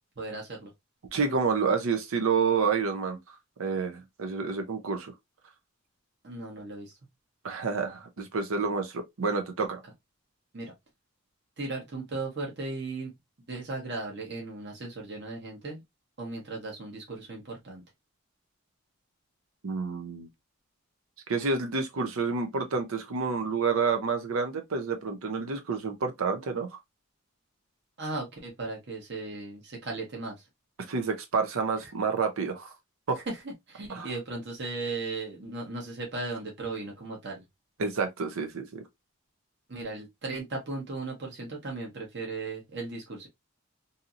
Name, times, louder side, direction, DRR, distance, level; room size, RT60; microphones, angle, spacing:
voice 1, 0.2-0.7 6.2-6.9 10.5-10.7 11.6-13.1 13.5-15.8 16.2-17.8 28.0-30.3 31.8-31.9 33.1-37.4 39.7-43.3, right 3 dB, 55° right, 1.0 m, -36 dB
voice 2, 1.1-3.2 3.6-5.1 7.4-9.8 19.6-20.3 21.3-26.7 30.9-32.7 33.1-33.2 33.9-34.1 37.8-38.8, right 5 dB, 85° right, 0.6 m, -29 dB
2.7 x 2.7 x 2.4 m
head